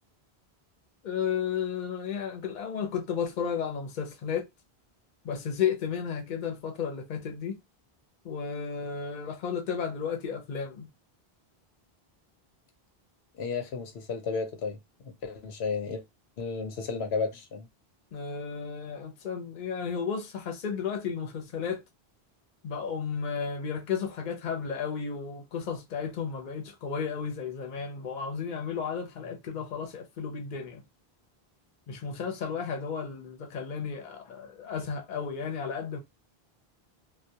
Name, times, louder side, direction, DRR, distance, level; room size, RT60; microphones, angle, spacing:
voice 1, 1.0-4.5 5.2-7.6 8.2-10.9 18.1-21.8 22.6-30.8 31.9-36.0, left 6 dB, 55° left, 0.7 m, -33 dB
voice 2, 13.4-14.8 15.0-16.0 16.4-17.7, left 4 dB, 85° left, 0.9 m, -33 dB
2.2 x 2.2 x 2.7 m
omnidirectional pair, 1.0 m